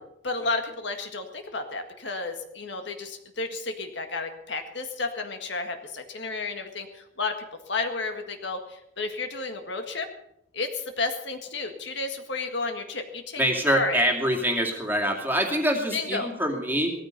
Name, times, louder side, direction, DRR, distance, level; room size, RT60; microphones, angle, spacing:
voice 1, 0.2-7.3 7.7-10.1 10.5-13.4 13.7-14.0 15.9-16.3, left 3 dB, 60° left, 6 dB, 1.7 m, -32 dB
voice 2, 13.4-16.9, equal, 10° right, 2 dB, 2.4 m, -25 dB
17.5 x 14.0 x 5.3 m, 0.79 s
head